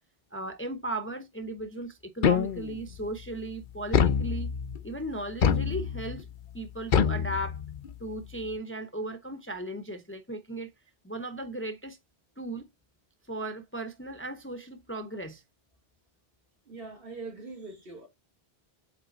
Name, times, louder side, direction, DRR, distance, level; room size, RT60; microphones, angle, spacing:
voice 1, 0.3-4.5 4.8-6.3 6.5-7.6 8.0-10.7 11.0-12.0 12.4-12.7 13.3-15.4, right 1 dB, 15° left, 0.7 m, -36 dB
sound 1, 2.2-2.9 3.9-4.8 5.4-6.2 6.9-7.9, left 7 dB, 55° left, 0.8 m, -26 dB
voice 2, 16.7-18.1, right 3 dB, 60° right, 2.2 m, -42 dB
8.2 x 3.4 x 3.9 m
omnidirectional pair, 1.1 m